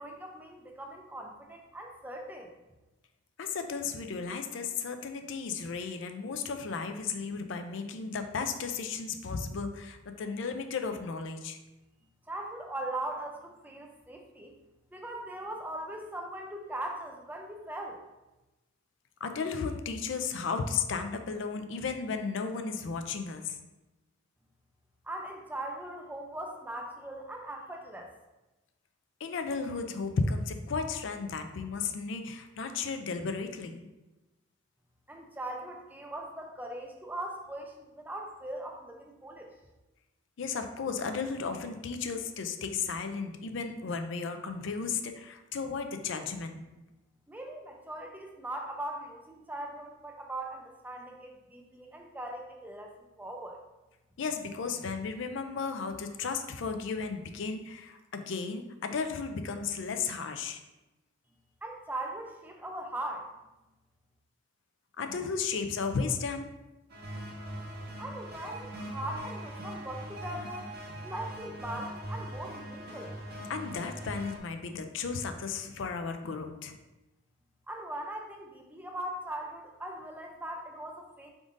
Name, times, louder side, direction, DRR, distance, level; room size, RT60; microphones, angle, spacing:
voice 1, 0.0-2.5 12.3-14.6 14.9-18.0 25.0-28.1 35.1-39.5 47.3-53.6 61.6-63.3 68.0-70.7 71.0-73.2 77.7-81.3, right 1 dB, 10° right, 2 dB, 0.4 m, -40 dB
voice 2, 3.4-11.6 19.2-23.6 29.2-33.9 40.4-46.7 54.2-60.6 65.0-66.5 73.5-76.7, left 5 dB, 65° left, 7 dB, 0.4 m, -34 dB
sound 1, 66.9-74.4, right 1 dB, 50° right, 0.7 m, -41 dB
5.0 x 3.6 x 2.5 m, 1.0 s
head